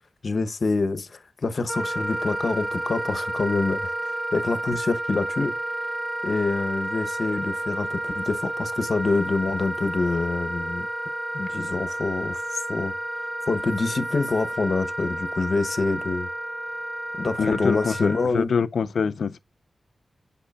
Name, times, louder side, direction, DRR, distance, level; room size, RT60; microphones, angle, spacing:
voice 1, 0.2-5.5 6.2-10.9 11.3-12.9 13.5-16.3 17.2-18.5, left 3 dB, 60° left, 0.8 m, -26 dB
Wind instrument woodwind instrument, 1.7-18.3, right 1 dB, 15° right, 0.4 m, -31 dB
voice 2, 17.4-19.4, left 6 dB, 85° left, 0.4 m, -25 dB
8.2 x 5.7 x 2.3 m
cardioid pair, 60°, 0 cm